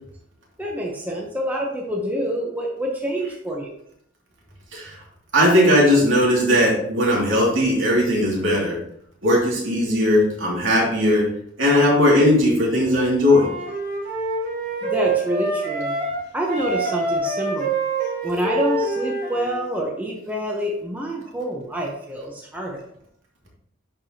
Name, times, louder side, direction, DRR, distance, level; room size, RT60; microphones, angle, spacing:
voice 1, 0.6-3.7 14.8-16.0 16.3-17.7 18.2-22.8, right 1 dB, 10° right, -2 dB, 0.9 m, -27 dB
voice 2, 5.3-8.8 9.2-11.3 11.6-13.5, left 1 dB, 70° right, -3 dB, 2.7 m, -18 dB
Wind instrument woodwind instrument, 13.2-16.2 16.5-19.6, right 2 dB, 50° right, 2.0 m, -26 dB
10.5 x 4.7 x 2.9 m, 0.71 s
head